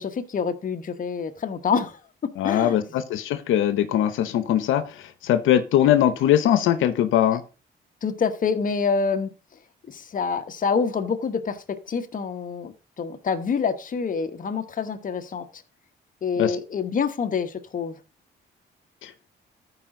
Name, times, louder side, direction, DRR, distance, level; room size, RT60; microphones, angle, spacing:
voice 1, 0.0-3.0 7.3-7.4 8.0-9.3 9.9-15.5 16.2-18.0, left 5 dB, 40° left, 1.1 m, -27 dB
voice 2, 2.4-4.8 5.2-7.4 16.4-16.5 19.0-19.1, left 11 dB, 85° left, 0.9 m, -21 dB
14.0 x 5.0 x 3.8 m
cardioid pair, 90°, 20 cm